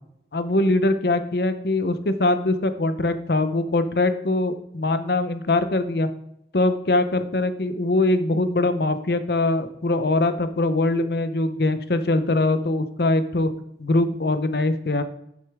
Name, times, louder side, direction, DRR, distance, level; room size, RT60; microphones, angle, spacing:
voice 1, 0.3-6.1 6.5-13.5 13.8-15.0, left 2 dB, 60° left, 10 dB, 0.7 m, -22 dB
10.5 x 6.4 x 3.5 m, 0.78 s
head